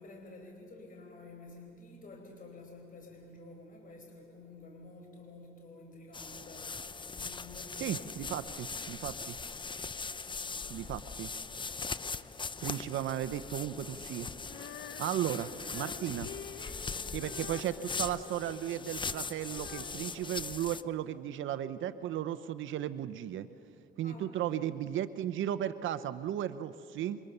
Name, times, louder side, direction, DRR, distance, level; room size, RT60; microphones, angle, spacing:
voice 1, 0.0-8.5 10.1-10.7 15.1-15.9 16.8-17.1 24.0-24.6, left 2 dB, 45° left, 2 dB, 4.6 m, -51 dB
sound 1, 6.1-20.8, left 4 dB, 25° left, 0.7 m, -40 dB
voice 2, 7.8-9.4 10.7-11.3 12.6-14.3 15.0-16.3 17.1-23.5 24.0-27.2, right 11 dB, 75° right, 12 dB, 0.8 m, -35 dB
Female singing, 14.4-21.4, left 8 dB, 65° left, 1.3 m, -49 dB
29.0 x 24.0 x 6.7 m, 2.6 s
cardioid pair, 90°, 20 cm